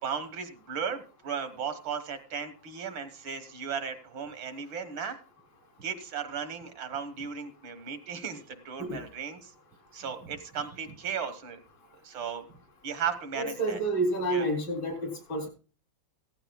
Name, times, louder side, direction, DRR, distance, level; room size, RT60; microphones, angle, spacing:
voice 1, 0.0-5.2 5.8-9.5 9.9-11.6 12.0-12.4 12.8-13.8 14.3-14.4, right 7 dB, 80° right, 8 dB, 2.0 m, -36 dB
voice 2, 13.3-15.5, right 1 dB, 75° left, 2 dB, 4.2 m, -29 dB
16.0 x 14.0 x 2.3 m, 0.36 s
omnidirectional pair, 2.1 m